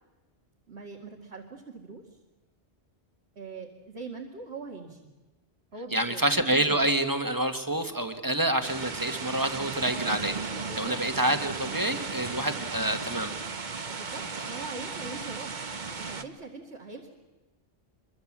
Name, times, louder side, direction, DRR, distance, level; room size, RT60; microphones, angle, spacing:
voice 1, 0.7-2.0 3.4-5.1 5.7-6.2 10.6-11.0 13.9-15.5 15.9-17.1, right 4 dB, 70° right, 0 dB, 2.5 m, -42 dB
voice 2, 5.9-10.3 10.8-13.3, right 1 dB, 20° right, 7 dB, 1.6 m, -27 dB
sound 1, 8.6-16.2, right 4 dB, 45° right, 1.2 m, -35 dB
25.5 x 23.5 x 7.5 m, 1.2 s
omnidirectional pair, 1.1 m